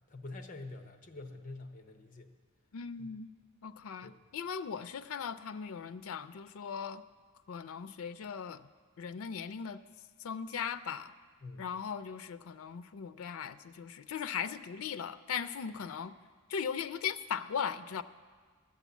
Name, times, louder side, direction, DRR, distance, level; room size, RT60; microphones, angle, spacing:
voice 1, 0.1-2.3 3.0-3.1 4.0-4.2 11.4-11.7, left 2 dB, 40° left, 5 dB, 0.8 m, -46 dB
voice 2, 2.7-3.3 3.6-7.0 7.5-8.7 9.0-9.8 10.2-11.1 11.6-16.1 16.5-18.0, left 7 dB, 85° left, 11 dB, 0.4 m, -38 dB
12.0 x 7.1 x 8.2 m, 1.5 s
head